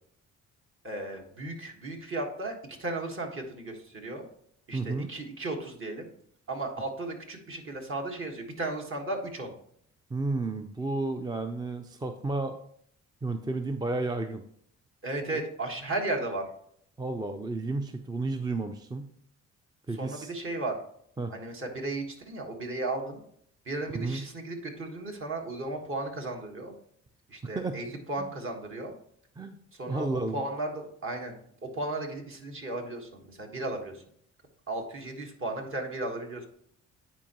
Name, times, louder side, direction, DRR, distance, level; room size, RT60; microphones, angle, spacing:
voice 1, 0.8-4.2 4.7-6.1 6.5-9.5 15.0-16.5 20.0-20.8 21.3-23.2 23.6-26.7 27.3-28.9 29.7-31.3 31.6-34.0 34.7-36.5, right 2 dB, 45° right, 2 dB, 1.5 m, -35 dB
voice 2, 4.7-5.1 10.1-12.6 13.2-14.4 15.3-15.4 17.0-19.1 19.9-20.3 21.2-21.3 23.9-24.2 27.6-27.8 28.2-28.3 29.4-29.6 29.9-30.4, right 2 dB, 15° right, 8 dB, 0.4 m, -32 dB
9.5 x 4.6 x 3.0 m, 0.66 s
cardioid pair, 90°, 30 cm